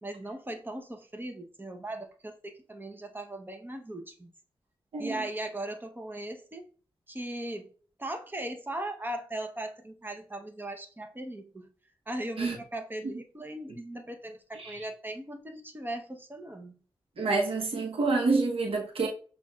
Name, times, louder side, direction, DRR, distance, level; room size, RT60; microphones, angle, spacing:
voice 1, 0.0-4.3 5.0-6.6 7.1-7.7 8.0-11.7 12.1-16.8, right 1 dB, 20° right, 0.8 m, -38 dB
voice 2, 17.2-19.1, right 3 dB, 80° right, 1.0 m, -27 dB
7.1 x 2.5 x 2.4 m
cardioid pair, 65°, 9 cm